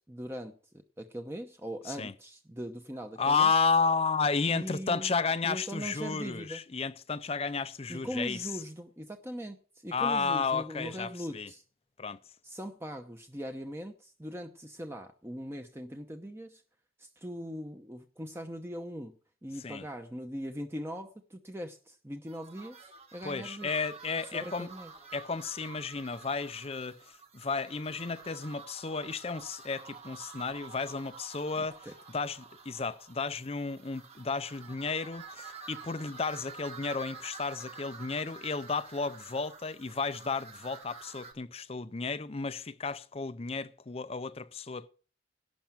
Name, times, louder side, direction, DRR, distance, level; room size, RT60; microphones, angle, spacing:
voice 1, 0.1-0.5 1.0-3.5 4.5-5.1 5.4-6.6 7.9-11.6 12.4-16.6 17.0-19.1 19.4-23.7 24.3-24.9 31.6-31.9, equal, 15° right, 0.8 m, -40 dB
voice 2, 3.2-8.4 9.9-11.5 12.0-12.2 19.6-19.8 23.2-24.7 25.1-27.0 27.3-31.9 32.1-44.9, left 4 dB, 30° left, 0.5 m, -32 dB
sound 1, 22.3-41.3, right 5 dB, 35° right, 1.7 m, -49 dB
11.5 x 5.9 x 8.7 m
head